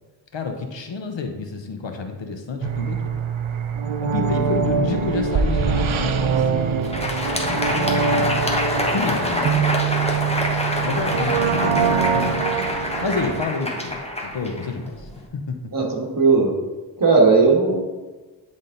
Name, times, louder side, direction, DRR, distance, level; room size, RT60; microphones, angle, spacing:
voice 1, 0.3-3.1 4.0-6.8 7.3-8.4 8.8-9.8 10.8-12.4 13.0-15.6, left 4 dB, 70° left, 5 dB, 1.0 m, -29 dB
sound 1, 2.6-13.4, right 6 dB, 90° right, 0.6 m, -23 dB
Crowd, 6.7-15.2, left 1 dB, 15° left, 1.1 m, -26 dB
voice 2, 15.7-16.5 17.0-17.8, right 4 dB, 45° right, -2 dB, 1.7 m, -16 dB
10.0 x 3.7 x 3.9 m, 1.3 s
wide cardioid pair, 75°, 46 cm